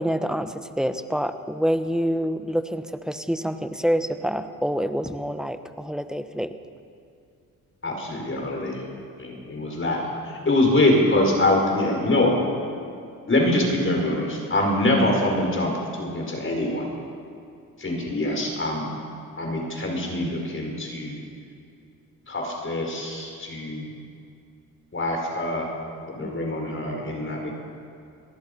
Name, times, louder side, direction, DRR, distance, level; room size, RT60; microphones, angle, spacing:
voice 1, 0.0-6.5, equal, ahead, 9 dB, 1.3 m, -26 dB
voice 2, 7.8-8.8 9.2-12.4 13.3-16.9 17.8-18.8 19.4-21.2 22.3-23.9 24.9-25.7 26.1-27.5, left 1 dB, 35° left, 0 dB, 5.5 m, -24 dB
25.0 x 18.5 x 5.6 m, 2.4 s
cardioid pair, 70°, 36 cm